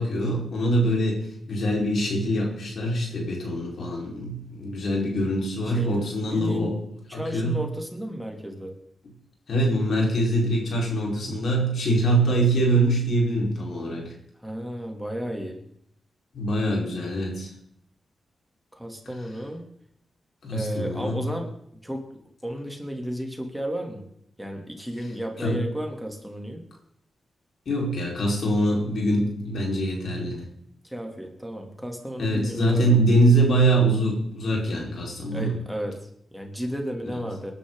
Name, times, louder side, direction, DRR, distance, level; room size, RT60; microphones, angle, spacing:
voice 1, 0.0-6.7 7.1-7.6 9.5-14.1 16.3-17.5 20.4-21.2 25.4-25.6 27.6-30.4 32.2-35.5, right 1 dB, 70° left, -1 dB, 5.0 m, -24 dB
voice 2, 5.6-6.7 7.1-8.8 14.4-15.6 18.7-19.6 20.5-21.5 21.8-22.1 22.4-24.1 24.4-26.6 30.8-33.0 35.3-37.5, equal, 5° right, 2 dB, 3.2 m, -33 dB
20.5 x 11.0 x 4.1 m, 0.69 s
cardioid pair, 55°, 0 cm